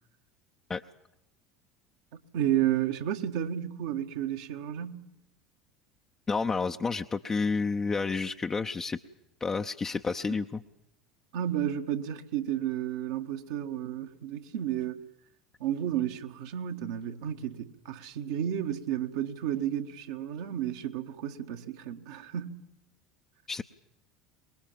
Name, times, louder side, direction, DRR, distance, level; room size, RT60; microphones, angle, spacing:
voice 1, 2.1-5.0 11.3-15.1 15.6-22.6, right 10 dB, 60° right, 1.5 m, -32 dB
voice 2, 6.3-9.0 9.4-10.6 23.5-23.6, left 4 dB, 20° left, 0.8 m, -30 dB
24.0 x 21.0 x 7.6 m
figure-of-eight pair, 70°, 2 cm